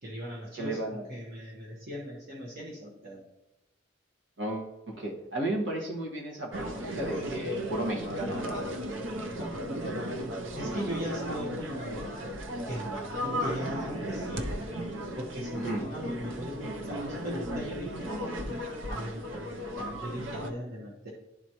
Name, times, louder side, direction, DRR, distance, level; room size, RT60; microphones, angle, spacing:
voice 1, 0.0-3.2 9.4-9.8 10.5-12.2 12.7-14.5 15.1-21.1, equal, 55° right, -5 dB, 1.3 m, -39 dB
voice 2, 0.6-1.0 4.4-8.6 15.5-15.8, right 1 dB, 70° right, -1 dB, 1.7 m, -34 dB
sound 1, 6.5-20.5, equal, 90° right, 0.7 m, -35 dB
11.5 x 4.2 x 3.0 m, 0.92 s
head